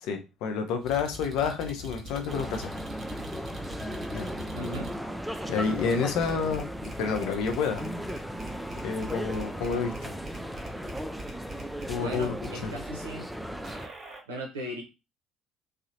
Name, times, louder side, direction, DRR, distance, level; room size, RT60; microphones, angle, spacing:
voice 1, 0.0-2.7 4.1-4.3 5.5-6.7 7.0-7.9 8.8-10.1 11.9-12.3 12.6-12.7, left 5 dB, 60° left, 0.5 m, -29 dB
sound 1, 0.8-4.9 5.4-12.5 13.6-14.2, right 1 dB, 40° right, 0.8 m, -44 dB
sound 2, 2.3-13.9, equal, ahead, 0.3 m, -36 dB
voice 2, 4.5-4.9 12.0-13.3 14.3-14.8, right 1 dB, 75° right, 0.5 m, -37 dB
2.7 x 2.0 x 2.7 m
figure-of-eight pair, 55°, 0 cm